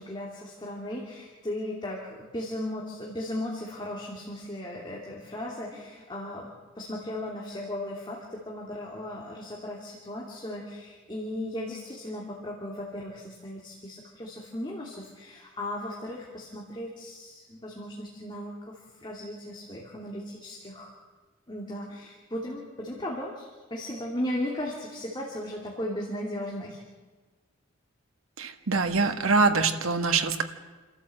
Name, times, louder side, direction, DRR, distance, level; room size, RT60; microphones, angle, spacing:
voice 1, 0.0-6.5 6.7-20.9 21.5-26.8, left 1 dB, 25° left, -3 dB, 2.6 m, -36 dB
voice 2, 28.4-30.4, right 4 dB, 90° right, 6 dB, 1.6 m, -24 dB
28.0 x 13.0 x 7.7 m, 1.3 s
head